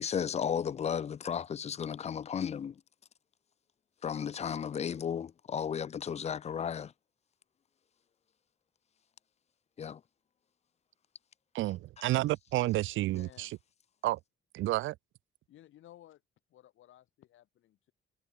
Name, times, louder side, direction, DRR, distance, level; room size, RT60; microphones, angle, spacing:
voice 1, 0.0-2.7 4.0-6.9 9.8-10.0, left 8 dB, 35° left, 0.4 m, -34 dB
voice 2, 11.5-13.5 14.0-14.2 14.5-14.9, right 16 dB, 80° right, 0.5 m, -30 dB
voice 3, 12.9-13.6 15.5-16.2 16.5-17.9, left 13 dB, 80° left, 4.6 m, -57 dB
cardioid pair, 90°, 20 cm